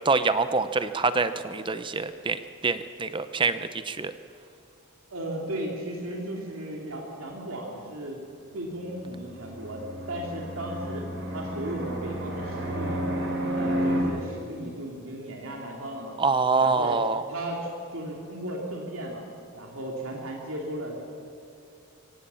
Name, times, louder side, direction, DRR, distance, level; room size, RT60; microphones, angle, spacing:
voice 1, 0.0-4.1 16.2-17.2, right 4 dB, 25° right, 12 dB, 0.7 m, -25 dB
voice 2, 5.1-8.2 8.5-11.0 11.3-13.0 13.5-16.2 16.6-17.0 17.3-19.2 19.5-21.0, right 1 dB, 75° right, -1 dB, 3.0 m, -35 dB
Fixed-wing aircraft airplane, 9.1-14.0, equal, 55° right, 5.0 m, -31 dB
24.0 x 17.5 x 7.0 m, 2.8 s
head